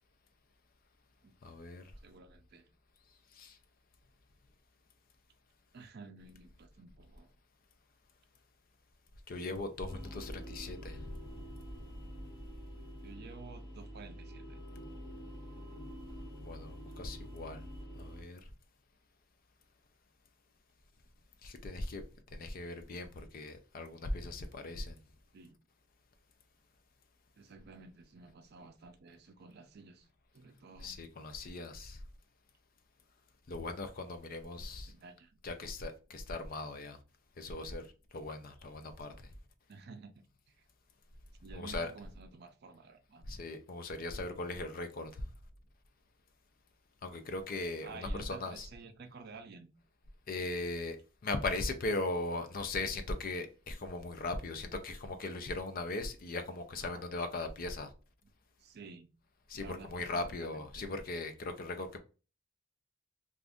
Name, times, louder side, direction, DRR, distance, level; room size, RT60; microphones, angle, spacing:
voice 1, 1.4-1.8 3.3-3.6 9.3-11.1 16.4-17.6 18.0-18.4 21.4-22.0 22.3-25.0 30.8-32.0 33.5-34.9 35.4-37.0 37.4-37.9 38.1-39.1 41.5-41.9 43.3-45.3 47.0-48.7 50.3-51.0 51.2-57.9 59.5-62.0, left 2 dB, 45° left, 0.5 m, -39 dB
voice 2, 2.0-2.7 5.7-7.3 13.0-14.7 25.3-25.6 27.4-30.1 30.3-31.0 34.9-35.4 39.7-40.1 40.5-40.6 41.4-43.2 47.8-49.7 56.8-57.0 58.6-59.1 59.5-60.9, right 4 dB, 50° right, 0.4 m, -52 dB
sound 1, 9.8-18.2, equal, 20° left, 0.8 m, -47 dB
2.5 x 2.5 x 3.4 m
head